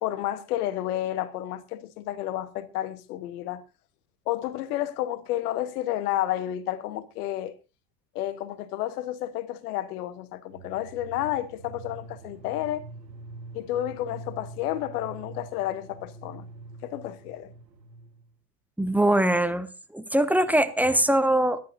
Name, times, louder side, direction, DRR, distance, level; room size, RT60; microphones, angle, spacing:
voice 1, 0.0-3.6 4.3-7.5 8.1-12.8 13.5-16.5 16.8-17.5, left 13 dB, 65° left, 1.3 m, -31 dB
sound 1, 10.5-18.3, right 3 dB, 90° right, 1.4 m, -44 dB
voice 2, 18.8-19.7 19.9-21.6, right 1 dB, 5° right, 1.1 m, -22 dB
24.0 x 11.5 x 2.6 m
figure-of-eight pair, 80°, 50 cm